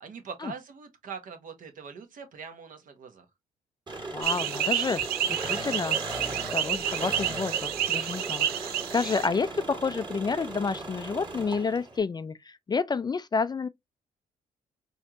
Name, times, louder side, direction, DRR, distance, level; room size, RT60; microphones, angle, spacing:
voice 1, 0.0-3.2, right 6 dB, 60° right, 1.2 m, -42 dB
Engine, 3.9-12.0, right 2 dB, 30° right, 1.7 m, -37 dB
voice 2, 4.1-5.0 5.3-6.0 6.5-13.7, left 5 dB, 25° left, 0.4 m, -30 dB
sound 1, 4.2-9.3, right 10 dB, 75° right, 0.5 m, -30 dB
4.3 x 2.5 x 2.9 m
supercardioid pair, 60°, 16 cm